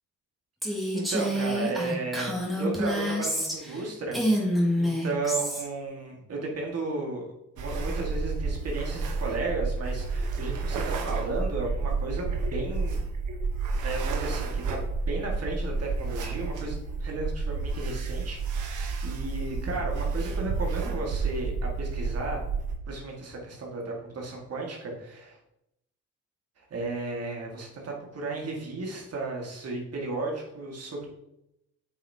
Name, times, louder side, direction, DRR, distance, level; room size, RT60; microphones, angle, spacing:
Female speech woman speaking, 0.6-3.8 4.1-5.6, equal, ahead, 2.2 m, -27 dB
voice 1, 0.6-4.2 4.4-13.0 13.8-22.4 22.9-25.4 26.6-31.1, right 3 dB, 55° right, -1 dB, 1.9 m, -34 dB
sound 1, 7.6-22.7, right 4 dB, 80° right, 1.2 m, -30 dB
8.3 x 5.9 x 2.9 m, 0.83 s
cardioid pair, 90°, 30 cm